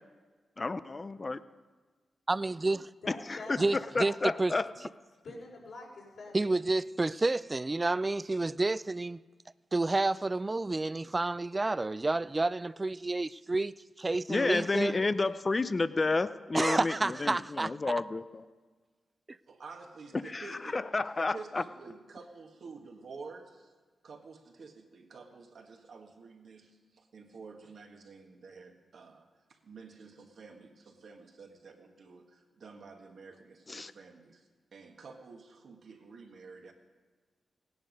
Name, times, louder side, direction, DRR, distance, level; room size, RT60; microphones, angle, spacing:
voice 1, 0.6-1.4 3.1-4.7 14.3-18.4 20.1-21.6 33.7-33.9, left 3 dB, 35° left, 0.5 m, -31 dB
voice 2, 2.3-2.8 3.6-4.5 6.3-9.2 9.7-13.7 14.0-15.0 16.5-17.7, right 2 dB, 30° right, 0.3 m, -29 dB
voice 3, 3.0-3.9 5.2-6.5, left 2 dB, 70° left, 4.1 m, -45 dB
voice 4, 19.5-20.8 21.2-23.7 24.0-36.7, right 4 dB, 70° right, 1.7 m, -50 dB
17.0 x 10.5 x 5.3 m
cardioid pair, 65°, 0 cm